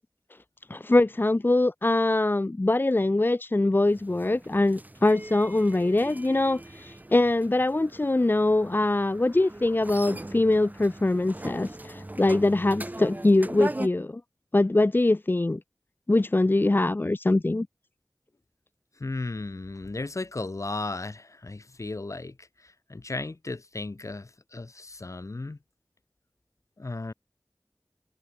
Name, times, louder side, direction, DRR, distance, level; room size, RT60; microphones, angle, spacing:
voice 1, 0.7-14.2 14.5-15.6 16.1-17.7, left 2 dB, 35° left, 0.7 m, -23 dB
sound 1, 3.8-13.9, right 1 dB, 30° right, 1.1 m, -40 dB
voice 2, 19.0-25.6 26.8-27.1, left 2 dB, 55° left, 1.6 m, -35 dB
wide cardioid pair, 60°, 6 cm